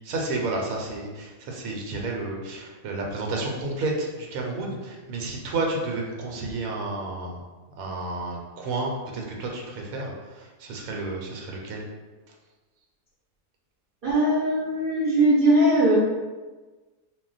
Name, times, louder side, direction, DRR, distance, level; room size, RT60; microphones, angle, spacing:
voice 1, 0.0-7.4 7.8-11.8, right 2 dB, 80° right, 0 dB, 1.0 m, -31 dB
voice 2, 14.0-16.0, right 1 dB, 50° right, -8 dB, 0.7 m, -20 dB
2.3 x 2.1 x 3.9 m, 1.3 s
omnidirectional pair, 1.4 m